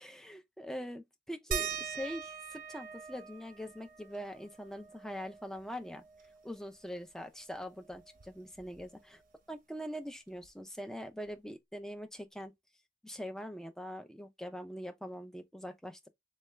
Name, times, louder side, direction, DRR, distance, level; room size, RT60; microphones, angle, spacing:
voice 1, 0.0-6.0 6.4-9.2 9.5-12.5 13.0-16.1, equal, 5° left, 0.3 m, -43 dB
sound 1, 1.5-6.6 7.0-7.1 7.4-9.2 10.4-10.5 11.3-11.4, right 6 dB, 50° right, 0.6 m, -43 dB
3.3 x 2.2 x 3.1 m
head